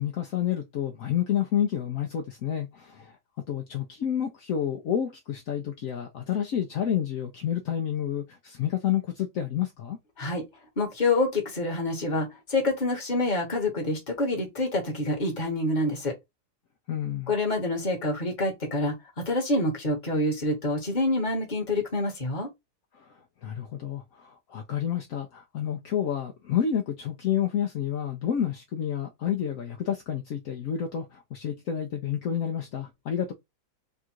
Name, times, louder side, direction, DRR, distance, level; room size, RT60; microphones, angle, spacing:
voice 1, 0.0-3.2 3.5-10.0 16.9-17.3 22.9-33.3, left 9 dB, 65° left, 0.8 m, -29 dB
voice 2, 10.8-16.1 17.3-22.5, left 2 dB, 25° left, 1.3 m, -27 dB
3.7 x 2.5 x 4.4 m
omnidirectional pair, 2.1 m